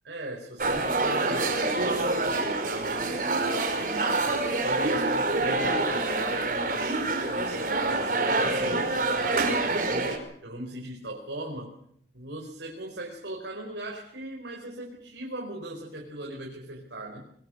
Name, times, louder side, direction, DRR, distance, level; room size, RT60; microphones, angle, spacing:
voice 1, 0.0-4.2 4.6-11.7 12.1-17.2, right 1 dB, 90° right, 0 dB, 4.8 m, -39 dB
sound 1, 0.6-10.2, right 2 dB, 50° right, 4.9 m, -26 dB
23.0 x 23.0 x 6.6 m, 0.66 s
head